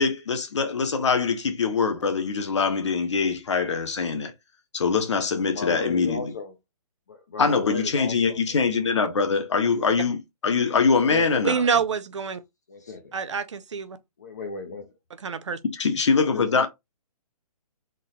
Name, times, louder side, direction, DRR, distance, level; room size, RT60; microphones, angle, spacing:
voice 1, 0.0-4.3 4.7-6.3 7.4-11.6 15.8-16.7, left 5 dB, 50° left, 1.1 m, -23 dB
voice 2, 5.4-6.5 7.1-8.4 8.8-8.9 9.8-9.9 11.0-11.4 12.7-13.1 14.2-14.9 16.1-16.7, left 3 dB, 30° left, 0.6 m, -35 dB
voice 3, 11.4-12.4 13.1-14.0 15.2-15.6, right 6 dB, 50° right, 0.6 m, -26 dB
3.9 x 2.9 x 4.3 m
hypercardioid pair, 180°, 19 cm